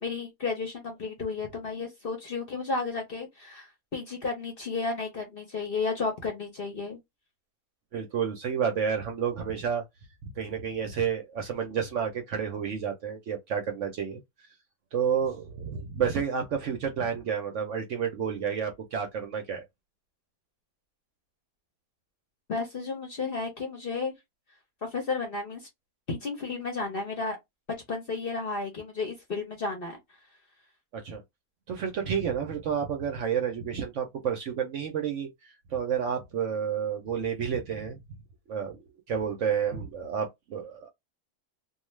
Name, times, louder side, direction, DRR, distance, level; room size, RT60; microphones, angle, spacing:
voice 1, 0.0-7.0 22.5-24.1 24.8-25.7 26.1-27.4 27.9-30.0, left 4 dB, 50° left, 0.7 m, -33 dB
voice 2, 7.9-9.8 10.2-14.2 14.9-19.6 30.9-31.2 31.7-38.0 38.5-38.8 39.1-40.9, right 7 dB, 65° right, 0.8 m, -30 dB
2.4 x 2.3 x 3.1 m
omnidirectional pair, 1.6 m